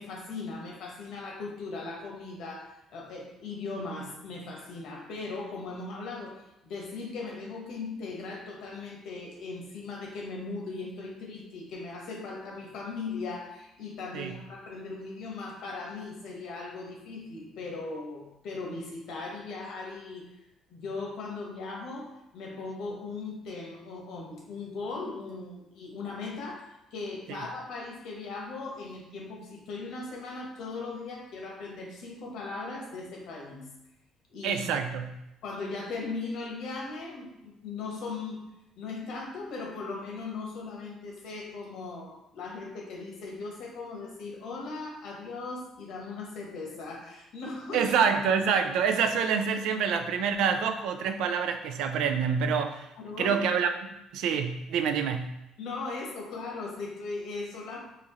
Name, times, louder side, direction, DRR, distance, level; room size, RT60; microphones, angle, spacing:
voice 1, 0.0-20.3 20.7-33.7 34.3-34.6 35.4-38.4 38.8-47.9 53.0-53.4 55.6-57.8, left 3 dB, 70° left, -1 dB, 1.0 m, -38 dB
voice 2, 34.4-35.2 47.7-52.9 53.2-55.4, right 6 dB, 75° right, 7 dB, 0.3 m, -27 dB
4.0 x 2.4 x 3.0 m, 0.89 s
cardioid pair, 115°, 0 cm